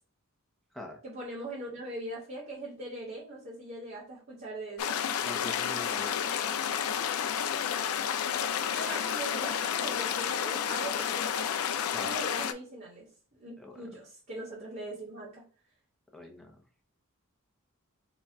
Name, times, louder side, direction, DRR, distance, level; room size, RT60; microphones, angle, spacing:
voice 1, 1.0-5.0 7.5-7.6 8.7-11.5 12.0-15.4, right 1 dB, 45° right, -4 dB, 1.3 m, -41 dB
sound 1, 4.8-12.5, left 8 dB, 90° left, 0.4 m, -31 dB
voice 2, 5.2-6.3 11.9-12.1 13.6-13.8 16.1-16.8, left 1 dB, ahead, 0 dB, 0.7 m, -44 dB
4.1 x 2.4 x 3.4 m, 0.40 s
head